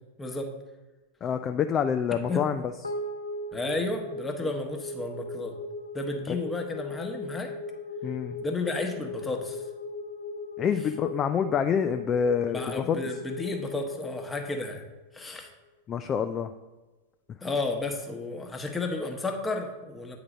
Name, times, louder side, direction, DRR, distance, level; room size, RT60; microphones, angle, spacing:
voice 1, 1.2-2.6 6.3-6.4 8.0-8.4 10.6-13.0 15.9-16.5, left 7 dB, 25° left, 8 dB, 0.3 m, -27 dB
sound 1, 2.8-15.4, left 2 dB, 80° left, 0.6 m, -38 dB
voice 2, 3.5-5.5 5.9-7.5 8.4-9.6 12.5-14.8 15.1-15.5 17.4-20.2, left 3 dB, 10° left, 3 dB, 1.0 m, -32 dB
8.7 x 3.9 x 5.0 m, 1.2 s
figure-of-eight pair, 90°, 0 cm